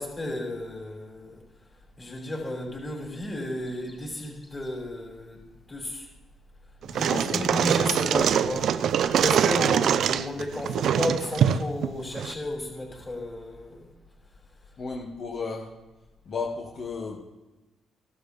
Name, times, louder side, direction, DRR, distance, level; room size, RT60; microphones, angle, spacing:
voice 1, 0.0-1.4 2.0-5.4 5.7-6.1 6.9-8.8 9.1-13.9, left 1 dB, 25° left, -1 dB, 5.5 m, -33 dB
voice 2, 6.8-7.6 9.5-9.6 14.8-15.7 16.3-17.2, left 4 dB, 55° left, -2 dB, 2.1 m, -34 dB
sound 1, 6.8-12.3, right 8 dB, 70° right, 0.5 m, -24 dB
17.0 x 12.5 x 3.5 m, 1.1 s
cardioid pair, 90°, 0 cm